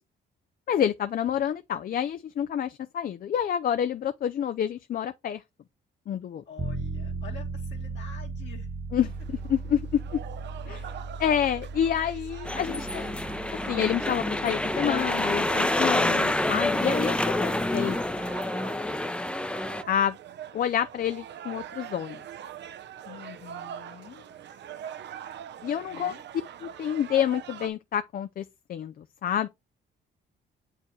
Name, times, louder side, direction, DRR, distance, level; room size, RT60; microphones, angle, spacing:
voice 1, 0.7-5.4 6.1-6.4 8.9-9.1 9.5-10.2 10.7-10.9 11.2-13.2 13.7-18.0 19.9-20.2 20.5-22.2 25.6-26.1 26.6-29.5, left 9 dB, 45° left, 0.4 m, -28 dB
voice 2, 6.4-8.7 23.0-24.2 25.9-26.2, left 7 dB, 65° left, 1.8 m, -47 dB
sound 1, 6.6-18.4, right 3 dB, 25° right, 0.9 m, -38 dB
sound 2, 9.0-27.7, right 9 dB, 60° right, 0.7 m, -44 dB
sound 3, 12.4-19.8, left 1 dB, 5° left, 0.6 m, -27 dB
6.9 x 4.7 x 3.1 m
cardioid pair, 90°, 20 cm